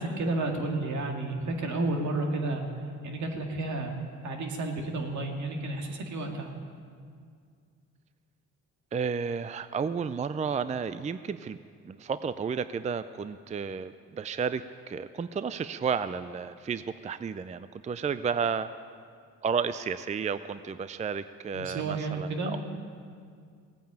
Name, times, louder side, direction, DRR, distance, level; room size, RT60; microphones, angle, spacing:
voice 1, 0.0-2.6 3.0-4.0 4.2-6.5 21.5-22.5, right 2 dB, 70° right, 2 dB, 2.3 m, -31 dB
voice 2, 8.9-11.6 11.9-18.7 19.4-22.6, right 6 dB, 25° right, 13 dB, 0.4 m, -32 dB
17.0 x 9.1 x 8.8 m, 2.2 s
cardioid pair, 90°, 30 cm